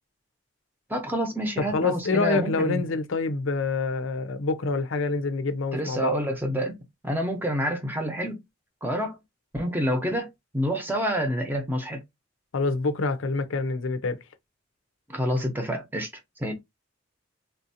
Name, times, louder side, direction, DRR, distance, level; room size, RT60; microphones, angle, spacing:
voice 1, 0.9-2.8 5.7-6.8 7.0-8.4 8.8-9.2 9.5-12.0 15.1-16.1 16.4-16.5, equal, 10° right, 0.7 m, -28 dB
voice 2, 1.7-6.1 12.5-14.2, left 3 dB, 80° left, 0.5 m, -26 dB
3.5 x 2.5 x 2.7 m
head